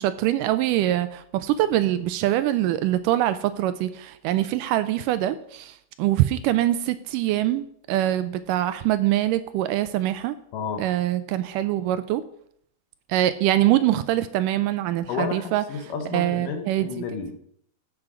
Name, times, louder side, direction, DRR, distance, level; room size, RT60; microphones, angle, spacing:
voice 1, 0.0-10.4 10.8-12.2 13.1-15.6 16.1-16.9, right 13 dB, 80° right, 13 dB, 2.0 m, -24 dB
voice 2, 10.5-10.9 15.1-17.4, left 6 dB, 75° left, 5 dB, 2.5 m, -31 dB
15.0 x 6.2 x 4.9 m, 0.67 s
omnidirectional pair, 4.0 m